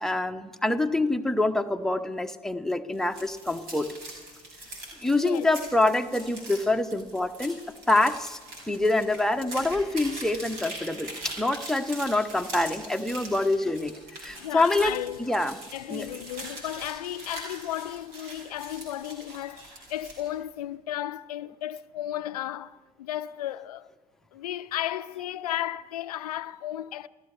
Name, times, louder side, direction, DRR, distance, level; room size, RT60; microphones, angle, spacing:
voice 1, 0.0-3.9 5.0-7.6 7.9-8.4 8.7-13.9 14.2-14.9 15.2-15.6 15.9-16.1, left 2 dB, ahead, 1.0 m, -26 dB
sound 1, 2.9-20.3, right 1 dB, 60° right, 5.9 m, -42 dB
voice 2, 5.1-5.5 12.0-12.1 14.3-15.4 15.7-23.9 24.3-27.1, left 12 dB, 75° left, 0.5 m, -34 dB
29.5 x 14.5 x 3.3 m
figure-of-eight pair, 55°, 20 cm